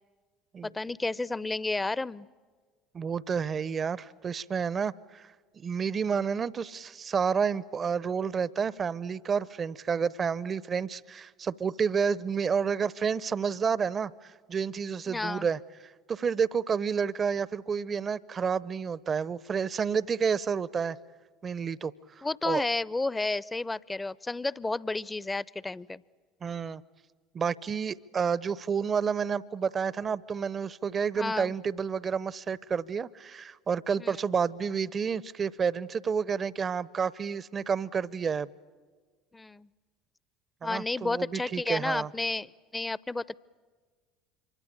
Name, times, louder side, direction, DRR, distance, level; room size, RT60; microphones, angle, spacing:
voice 1, 0.6-2.3 15.1-15.5 22.2-26.0 31.2-31.6 34.0-34.2 39.3-39.7 40.6-43.4, left 2 dB, 15° left, 22 dB, 0.7 m, -31 dB
voice 2, 2.9-15.6 16.1-21.0 21.4-22.6 26.4-26.8 27.3-38.5 40.6-42.1, right 6 dB, 35° right, 21 dB, 0.7 m, -30 dB
26.5 x 24.5 x 8.7 m, 1.5 s
figure-of-eight pair, 65°, 0 cm